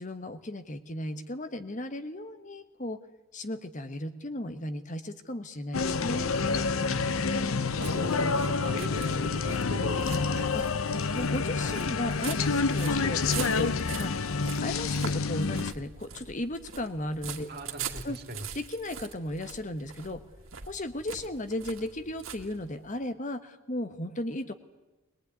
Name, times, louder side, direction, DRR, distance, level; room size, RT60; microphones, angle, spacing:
voice 1, 0.0-3.0 3.3-6.3 9.9-10.1 10.5-10.6 10.9-14.3 14.6-17.5 18.0-18.2 18.5-20.2 20.7-24.5, left 1 dB, 35° left, 9 dB, 1.3 m, -35 dB
sound 1, 5.7-15.7, left 4 dB, 85° left, 0.8 m, -28 dB
sound 2, 6.5-23.0, right 7 dB, 75° right, 2.1 m, -44 dB
voice 2, 6.9-10.5 17.5-18.4, right 1 dB, 50° right, 4 dB, 2.6 m, -40 dB
22.5 x 20.5 x 9.5 m, 1.1 s
head